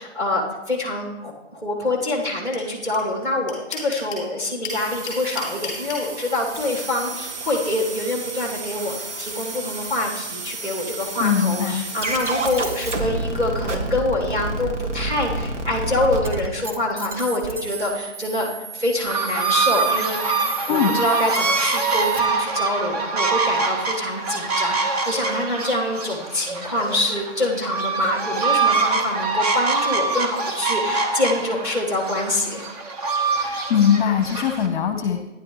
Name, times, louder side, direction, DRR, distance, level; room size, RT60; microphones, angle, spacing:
voice 1, 0.0-20.3 20.7-32.7, left 2 dB, 10° right, -3 dB, 2.7 m, -25 dB
sound 1, 2.5-2.6 2.9-3.0 3.2-4.2 4.6-6.0, left 6 dB, 10° left, 4.2 m, -32 dB
sound 2, 4.7-22.2, right 2 dB, 75° right, 2.0 m, -31 dB
voice 2, 11.2-11.8 20.7-20.9 33.4-35.2, left 8 dB, 40° left, 5 dB, 1.0 m, -21 dB
sound 3, 19.1-34.7, right 4 dB, 30° right, 1.3 m, -24 dB
15.0 x 10.5 x 3.2 m, 1.1 s
figure-of-eight pair, 145°, 36 cm